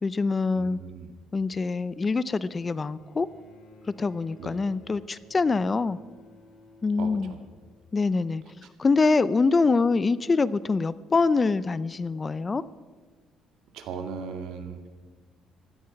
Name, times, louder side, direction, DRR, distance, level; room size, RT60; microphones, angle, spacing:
voice 1, 0.0-0.8 1.3-3.3 4.0-6.0 6.8-7.3 7.9-8.4 8.8-12.6, left 4 dB, 20° left, 17 dB, 0.4 m, -24 dB
voice 2, 0.5-1.1 4.4-4.6 7.0-7.4 13.7-14.9, right 6 dB, 70° right, 7 dB, 2.0 m, -38 dB
Bowed string instrument, 2.9-8.4 9.5-9.6, left 3 dB, 45° left, 2.9 m, -54 dB
16.5 x 13.0 x 5.8 m, 1.4 s
cardioid pair, 145°, 0 cm